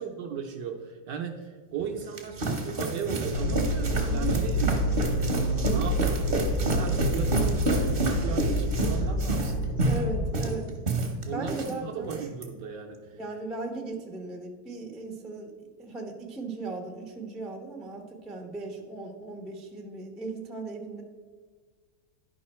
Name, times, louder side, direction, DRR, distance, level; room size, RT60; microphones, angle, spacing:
voice 1, 0.0-4.7 5.2-6.0 6.5-9.6 11.3-13.2, right 7 dB, 65° right, 3 dB, 1.2 m, -36 dB
sound 1, 1.8-11.7 12.0-12.4, right 2 dB, 40° right, 0.9 m, -29 dB
sound 2, 3.3-10.4, equal, 70° left, 1.2 m, -28 dB
voice 2, 4.0-4.4 9.8-10.7 11.1-12.1 13.1-15.5 15.8-21.0, right 2 dB, ahead, 1 dB, 0.3 m, -37 dB
11.0 x 5.4 x 4.3 m, 1.5 s
omnidirectional pair, 2.4 m